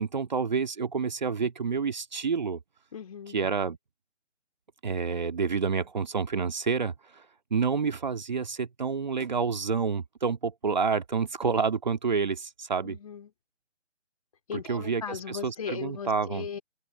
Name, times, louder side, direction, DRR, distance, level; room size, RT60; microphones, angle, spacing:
voice 1, 0.0-2.6 3.3-3.8 4.8-7.2 7.5-13.0 14.5-16.5, right 5 dB, 35° right, 1.9 m, -29 dB
voice 2, 2.9-3.4 12.8-13.3 14.5-16.6, left 7 dB, 30° left, 3.3 m, -38 dB
open air
figure-of-eight pair, 150°, 36 cm